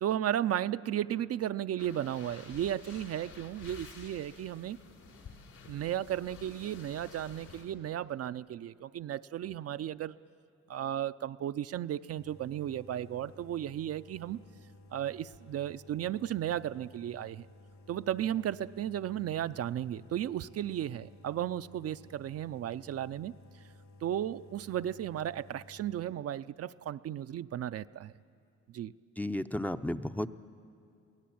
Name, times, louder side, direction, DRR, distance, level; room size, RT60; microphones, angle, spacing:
voice 1, 0.0-4.8 5.7-10.2 10.7-14.4 14.9-17.5 17.9-23.3 24.0-28.1 28.7-28.9, right 11 dB, 55° right, 12 dB, 0.5 m, -34 dB
sound 1, 1.8-7.6, left 5 dB, 85° left, 3.6 m, -51 dB
sound 2, 12.2-26.1, left 1 dB, 65° left, 2.5 m, -56 dB
voice 2, 29.2-30.3, left 1 dB, 5° left, 8 dB, 0.5 m, -33 dB
23.0 x 17.0 x 8.7 m, 2.4 s
cardioid pair, 90°, 30 cm